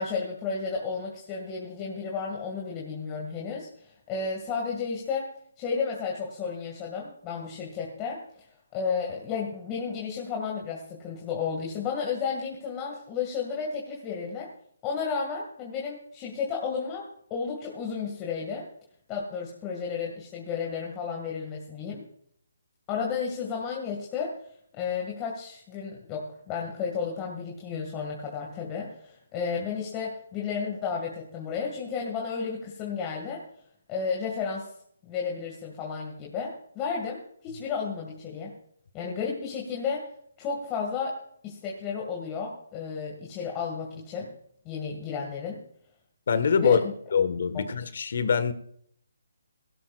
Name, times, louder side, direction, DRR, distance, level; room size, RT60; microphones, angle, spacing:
voice 1, 0.0-5.3 5.6-8.5 8.7-14.5 14.8-18.6 19.1-22.0 22.9-24.3 24.8-33.4 33.9-34.7 35.0-38.6 38.9-40.1 40.4-41.2 41.4-44.3 44.6-45.6 46.6-46.9 47.5-47.6, left 6 dB, 20° left, -2 dB, 2.2 m, -32 dB
voice 2, 46.3-46.8 47.1-48.5, left 6 dB, 60° left, 11 dB, 1.6 m, -24 dB
17.0 x 17.0 x 2.5 m, 0.64 s
hypercardioid pair, 160°, 0 cm